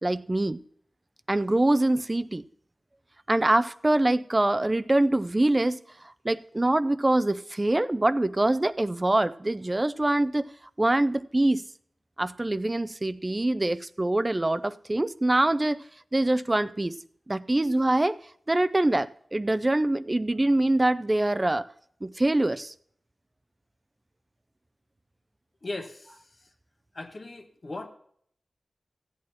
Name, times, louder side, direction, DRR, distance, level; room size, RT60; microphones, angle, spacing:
voice 1, 0.0-0.6 1.3-2.4 3.3-5.8 6.2-10.5 10.8-11.6 12.2-15.8 16.1-17.0 17.3-18.2 18.5-21.7 22.0-22.7, right 1 dB, 25° right, 0.4 m, -24 dB
voice 2, 25.6-26.2 26.9-27.9, left 2 dB, 45° left, 1.3 m, -37 dB
16.0 x 8.7 x 2.9 m
wide cardioid pair, 80°, 0 cm